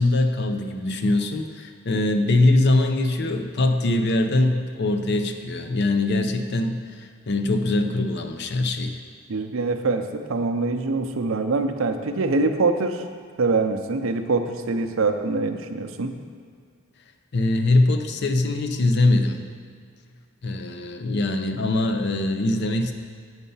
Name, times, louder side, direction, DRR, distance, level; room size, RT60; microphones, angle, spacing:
voice 1, 0.0-9.0 17.3-19.4 20.4-22.9, left 2 dB, 55° left, 6 dB, 0.6 m, -22 dB
voice 2, 9.3-13.0 13.4-16.1, right 3 dB, 70° right, 6 dB, 0.6 m, -24 dB
8.1 x 5.5 x 5.5 m, 2.1 s
head